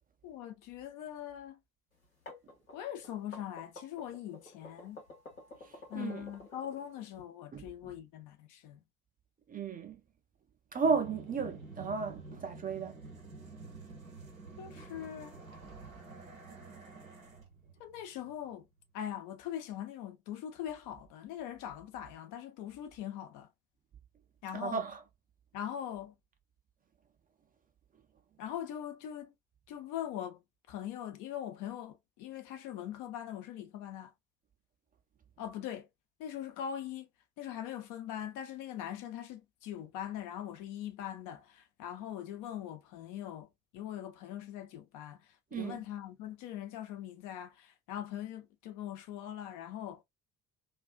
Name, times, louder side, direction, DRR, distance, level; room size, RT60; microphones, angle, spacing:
voice 1, 0.2-1.6 2.7-5.0 5.9-8.8 14.6-15.3 17.8-18.6 18.9-23.5 24.4-24.8 25.5-26.1 28.4-29.3 29.7-30.4 30.7-34.1 35.4-35.9 36.2-37.1 37.4-43.5 43.7-45.2 45.5-50.0, left 10 dB, 50° left, 0.6 m, -41 dB
sound 1, 2.0-7.2, left 2 dB, 85° left, 1.1 m, -51 dB
voice 2, 7.5-7.9 9.5-10.0 10.7-12.9 24.5-25.0 45.5-45.8, right 5 dB, 20° right, 0.5 m, -34 dB
sound 2, 10.8-19.0, right 3 dB, 90° right, 0.6 m, -49 dB
2.4 x 2.3 x 2.2 m
figure-of-eight pair, 50°, 40 cm